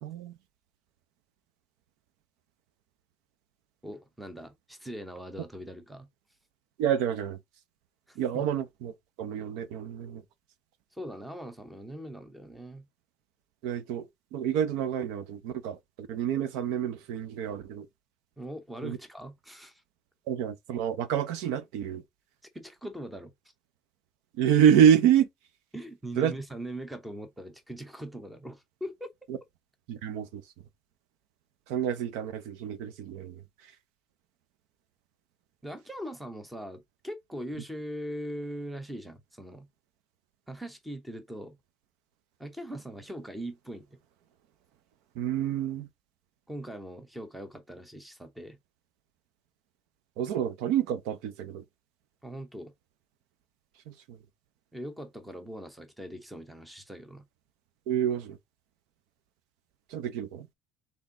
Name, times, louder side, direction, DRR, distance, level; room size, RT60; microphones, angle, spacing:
voice 1, 0.0-0.4 6.8-7.4 8.2-8.9 9.2-10.2 13.6-14.1 14.3-17.9 18.8-19.0 20.3-22.0 24.4-25.3 26.2-26.3 29.9-30.4 31.7-33.4 45.2-45.9 50.2-51.6 53.9-54.2 57.9-58.4 59.9-60.5, right 9 dB, 65° right, 0.6 m, -27 dB
voice 2, 3.8-6.1 8.1-8.4 10.9-12.9 18.4-19.8 22.5-23.3 25.7-29.1 35.6-39.7 40.5-41.6 42.4-44.0 46.5-48.6 52.2-52.7 54.7-57.3, right 1 dB, 5° right, 0.8 m, -41 dB
4.2 x 3.5 x 3.6 m
cardioid pair, 170°, 0 cm